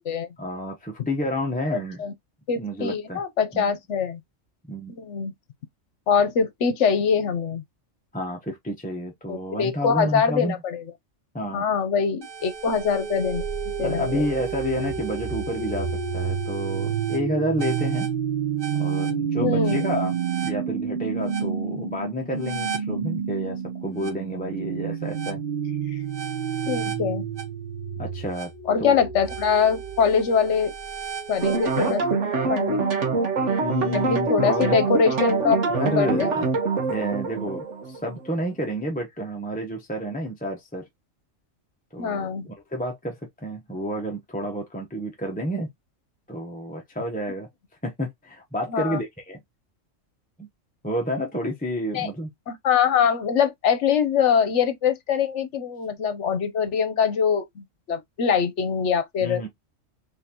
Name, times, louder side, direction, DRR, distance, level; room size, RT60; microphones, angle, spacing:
voice 1, 0.4-2.0 2.6-3.2 3.5-3.7 4.7-4.9 8.1-10.5 11.3-11.6 13.8-18.1 18.8-20.1 20.4-25.4 28.0-28.5 28.8-29.0 33.6-34.8 35.7-36.5 36.9-40.8 41.9-45.7 46.3-47.5 47.8-49.4 50.4-50.5 50.8-52.3 59.2-59.5, equal, 10° left, 0.7 m, -30 dB
voice 2, 1.7-2.1 2.5-4.2 5.0-5.3 6.1-7.6 9.3-10.8 11.5-13.4 13.8-14.2 19.4-19.8 25.9-26.0 26.6-27.2 28.7-30.7 31.3-32.2 32.5-32.9 33.9-35.6 36.0-36.3 42.0-42.5 48.7-49.0 51.9-52.1 52.5-59.5, left 6 dB, 65° left, 1.1 m, -23 dB
sound 1, 12.2-32.0, right 7 dB, 45° right, 0.9 m, -29 dB
sound 2, 31.4-38.4, right 4 dB, 65° right, 1.5 m, -25 dB
3.8 x 3.5 x 2.9 m
omnidirectional pair, 1.3 m